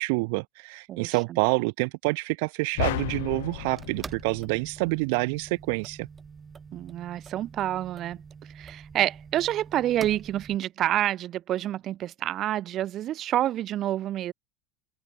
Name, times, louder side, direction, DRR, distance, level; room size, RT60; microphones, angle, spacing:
voice 1, 0.0-6.1, right 30 dB, 75° right, 0.4 m, -27 dB
voice 2, 0.9-1.4 6.7-8.2 8.5-14.3, right 12 dB, 40° right, 1.2 m, -28 dB
sound 1, 2.7-10.6, right 5 dB, 20° right, 5.6 m, -45 dB
sound 2, 2.8-5.2, left 18 dB, 90° left, 1.0 m, -34 dB
open air
supercardioid pair, 135°, 0 cm